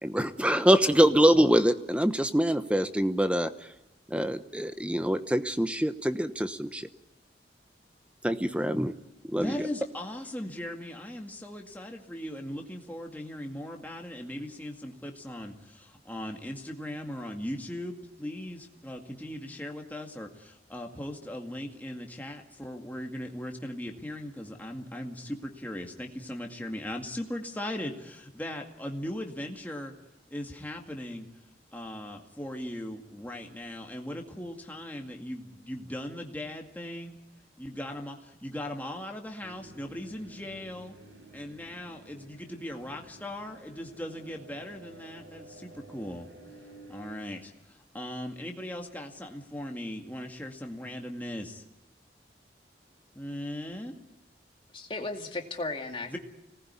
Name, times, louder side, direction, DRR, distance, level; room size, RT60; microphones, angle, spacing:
voice 1, 0.0-3.7 4.1-6.9 8.2-9.0 9.3-9.6, equal, 5° right, 1.0 m, -24 dB
voice 2, 9.3-29.9 30.3-31.3 31.7-37.2 37.6-41.0 41.3-46.3 46.9-51.6 53.2-53.9 56.1-56.2, left 1 dB, 10° left, 2.1 m, -38 dB
sound 1, 39.4-47.1, right 1 dB, 85° right, 4.9 m, -52 dB
voice 3, 54.7-56.2, left 2 dB, 30° left, 2.3 m, -35 dB
25.5 x 19.0 x 9.7 m
head